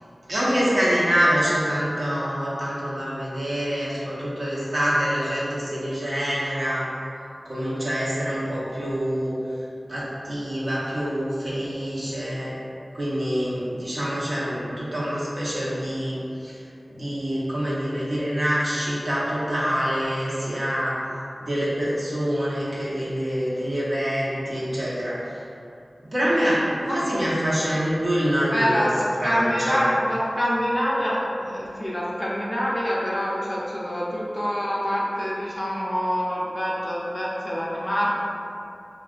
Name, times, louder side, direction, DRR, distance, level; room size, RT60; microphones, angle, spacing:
voice 1, 0.3-6.8 7.4-9.3 9.9-12.5 12.9-16.6 16.9-21.0 21.4-25.3 26.1-28.9 29.2-29.8, equal, 65° right, -9 dB, 0.8 m, -25 dB
voice 2, 28.5-38.2, equal, 25° left, -6 dB, 0.5 m, -25 dB
3.5 x 2.4 x 2.4 m, 2.6 s
wide cardioid pair, 70°, 0 cm